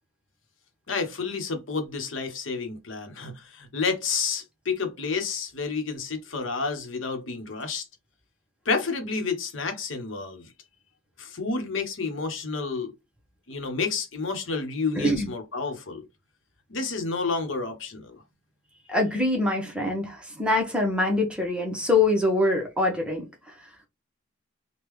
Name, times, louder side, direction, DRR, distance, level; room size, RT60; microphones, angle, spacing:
voice 1, 0.9-7.8 8.6-10.5 11.2-12.9 13.5-16.0 16.7-18.2, left 4 dB, 75° left, 0.9 m, -30 dB
voice 2, 15.0-15.3 18.9-23.2, left 2 dB, 5° right, 0.9 m, -24 dB
3.7 x 2.3 x 3.0 m
head